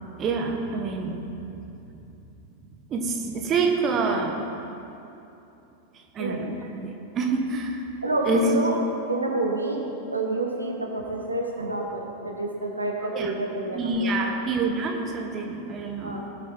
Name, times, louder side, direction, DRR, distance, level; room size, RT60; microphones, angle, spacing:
voice 1, 0.2-1.4 2.9-4.5 6.1-6.9 7.1-7.8 8.2-8.7 13.1-13.3 13.7-16.3, right 3 dB, 30° right, 2 dB, 1.4 m, -26 dB
voice 2, 8.0-8.7 9.1-9.8 10.1-14.3 16.0-16.2, right 2 dB, 85° right, 0 dB, 1.6 m, -28 dB
19.5 x 8.2 x 4.5 m, 2.9 s
figure-of-eight pair, 90°, 0 cm